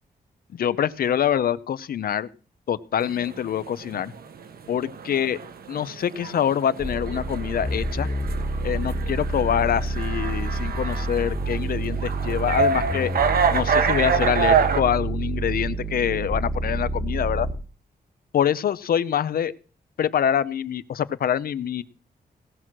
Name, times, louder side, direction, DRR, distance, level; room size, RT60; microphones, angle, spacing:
voice 1, 0.5-2.3 2.7-4.1 4.7-5.4 5.7-8.1 8.6-13.1 13.5-17.5 18.3-19.5 20.0-21.8, left 9 dB, 65° left, 16 dB, 0.6 m, -25 dB
sound 1, 3.0-14.8, right 6 dB, 70° right, 1.2 m, -27 dB
sound 2, 6.8-17.6, right 2 dB, ahead, 1.3 m, -28 dB
18.0 x 6.3 x 6.1 m, 0.37 s
wide cardioid pair, 175°, 16 cm